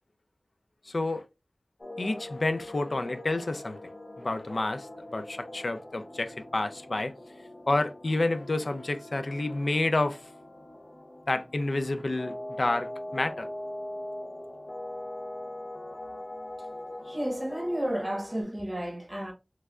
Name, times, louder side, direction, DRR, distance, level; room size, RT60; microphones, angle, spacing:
voice 1, 0.9-1.2 2.0-3.8 4.2-4.9 5.1-7.1 7.7-10.2 11.3-13.5, left 2 dB, 70° left, 0.5 m, -29 dB
sound 1, 1.8-18.4, left 1 dB, 50° left, 0.8 m, -42 dB
voice 2, 17.0-19.3, equal, 20° right, 1.1 m, -32 dB
3.4 x 3.2 x 2.3 m
wide cardioid pair, 50°, 0 cm